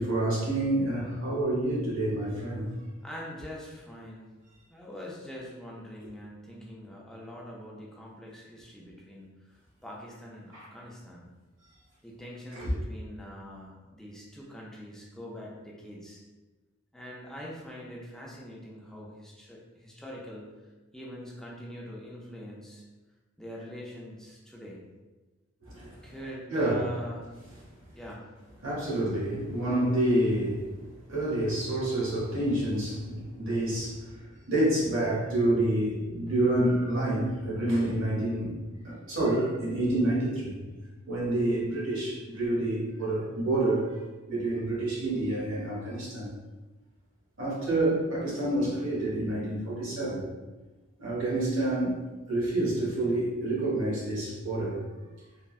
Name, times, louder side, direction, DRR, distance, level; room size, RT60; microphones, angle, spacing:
voice 1, 0.0-2.7 10.5-10.7 12.5-12.7 25.6-25.9 26.5-26.8 28.6-30.7 31.1-34.2 34.5-38.6 38.8-40.6 41.1-44.0 44.3-46.3 47.4-50.2 51.0-51.9 52.3-54.8, right 1 dB, 85° right, -6 dB, 1.1 m, -28 dB
voice 2, 3.0-4.3 4.7-11.3 12.0-16.2 16.9-20.5 20.9-22.8 23.4-24.8 26.0-27.6 28.0-28.3, equal, 5° left, -4 dB, 0.4 m, -43 dB
3.5 x 2.1 x 2.3 m, 1.2 s
head